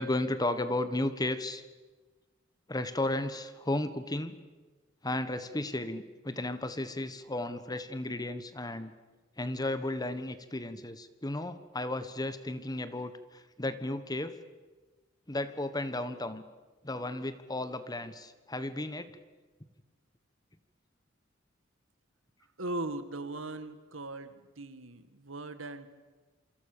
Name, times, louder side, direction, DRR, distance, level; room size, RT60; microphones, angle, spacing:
voice 1, 0.0-1.6 2.7-4.4 5.0-8.9 9.4-14.4 15.3-16.4 16.8-19.1, left 1 dB, 20° left, 12 dB, 1.4 m, -34 dB
voice 2, 22.6-25.9, right 2 dB, 85° right, 11 dB, 2.0 m, -39 dB
27.5 x 26.0 x 6.9 m, 1.2 s
head